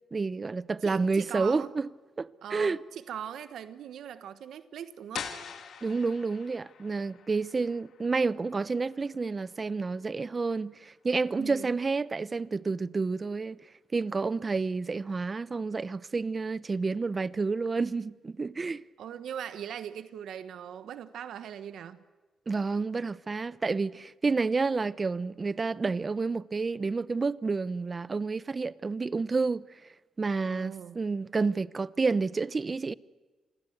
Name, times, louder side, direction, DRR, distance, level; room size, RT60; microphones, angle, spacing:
voice 1, 0.1-1.9 2.2-2.8 5.8-13.6 13.9-18.8 22.5-29.6 30.2-32.9, right 4 dB, 35° right, 0.8 m, -29 dB
voice 2, 0.8-1.7 2.4-5.3 11.3-11.7 19.0-22.0 30.4-31.0, right 9 dB, 80° right, 1.2 m, -40 dB
sound 1, 5.1-10.8, left 7 dB, 70° left, 2.8 m, -45 dB
28.0 x 21.0 x 8.0 m
cardioid pair, 80°, 0 cm